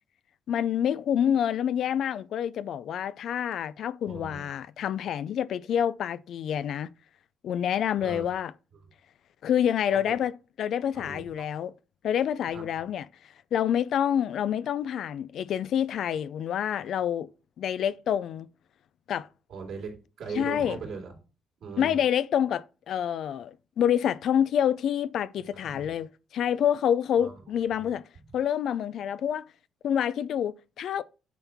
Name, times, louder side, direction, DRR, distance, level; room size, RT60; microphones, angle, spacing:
voice 1, 0.5-6.9 7.4-8.5 9.4-10.3 10.6-11.7 12.0-13.1 13.5-17.3 17.6-18.5 19.1-19.3 20.4-20.8 21.8-28.0 28.3-29.5 29.8-31.0, left 9 dB, 70° left, 0.4 m, -27 dB
voice 2, 4.1-4.5 8.0-8.3 9.9-10.2 10.9-11.5 12.5-12.6 19.5-21.2 21.6-22.0 25.6-25.9 27.2-27.4 27.8-27.9, right 5 dB, 75° right, 3.2 m, -39 dB
9.2 x 4.4 x 3.5 m
cardioid pair, 85°, 0 cm